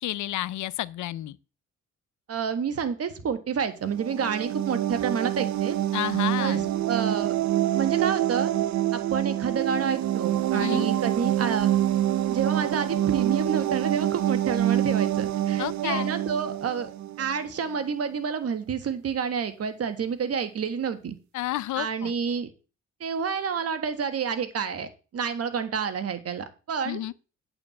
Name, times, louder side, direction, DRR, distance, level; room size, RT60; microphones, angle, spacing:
voice 1, 0.0-1.4 5.9-6.7 10.5-10.9 15.6-16.1 21.3-22.1 26.8-27.1, left 14 dB, 75° left, 0.6 m, -31 dB
voice 2, 2.3-5.8 6.4-6.6 6.9-7.3 7.7-8.6 8.9-11.7 12.3-16.9 17.2-21.2 21.8-22.5 23.0-27.0, right 6 dB, 50° right, 1.5 m, -29 dB
sound 1, 3.9-17.4, right 12 dB, 70° right, 0.6 m, -26 dB
8.7 x 4.6 x 7.2 m
cardioid pair, 90°, 30 cm